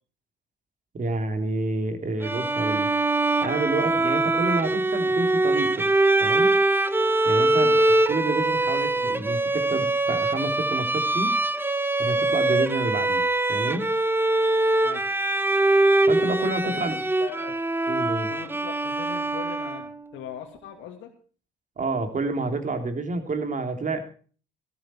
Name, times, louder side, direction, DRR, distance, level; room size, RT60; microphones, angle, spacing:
voice 1, 0.9-2.9 3.4-5.9 6.2-6.5 7.2-11.3 12.0-13.2 13.5-13.9 16.1-16.9 17.9-18.3 21.8-24.0, right 3 dB, 40° right, 7 dB, 3.4 m, -29 dB
Bowed string instrument, 2.2-20.0, right 2 dB, 10° right, 1.3 m, -23 dB
voice 2, 16.6-17.6 18.3-21.1, left 10 dB, 65° left, 1 dB, 2.6 m, -40 dB
15.0 x 13.0 x 4.6 m, 0.40 s
hypercardioid pair, 65°, 21 cm